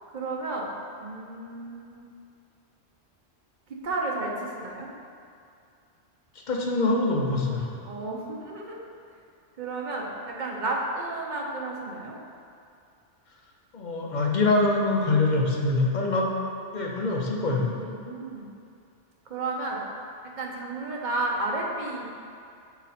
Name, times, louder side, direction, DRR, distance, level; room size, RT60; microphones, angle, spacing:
voice 1, 0.1-0.7 1.0-2.0 3.8-4.9 7.8-8.9 9.6-12.2 17.1-18.5 19.3-19.8 20.4-22.1, right 2 dB, 45° right, -2 dB, 0.8 m, -32 dB
voice 2, 6.5-7.7 13.7-16.3 16.7-17.7, left 2 dB, 45° left, -1 dB, 0.7 m, -24 dB
6.2 x 4.1 x 4.2 m, 2.4 s
omnidirectional pair, 1.2 m